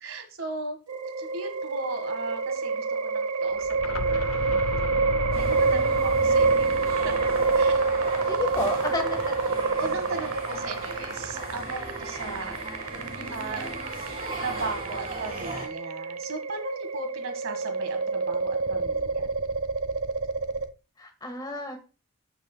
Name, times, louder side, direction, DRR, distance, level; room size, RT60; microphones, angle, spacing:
voice 1, 0.0-0.8 1.2-4.9 5.3-6.7 7.0-7.3 7.5-8.4 9.8-12.6 13.3-13.7 14.4-19.3, right 2 dB, 60° right, 6 dB, 1.8 m, -37 dB
sound 1, 0.9-20.7, right 4 dB, 90° right, 0.9 m, -27 dB
sound 2, 3.5-9.3, left 4 dB, 80° left, 0.6 m, -35 dB
sound 3, 5.3-15.7, right 2 dB, 25° right, 5.0 m, -37 dB
voice 2, 5.6-5.9 8.3-9.2 21.0-21.8, left 2 dB, 20° left, 5 dB, 1.6 m, -31 dB
14.0 x 6.0 x 2.3 m, 0.32 s
head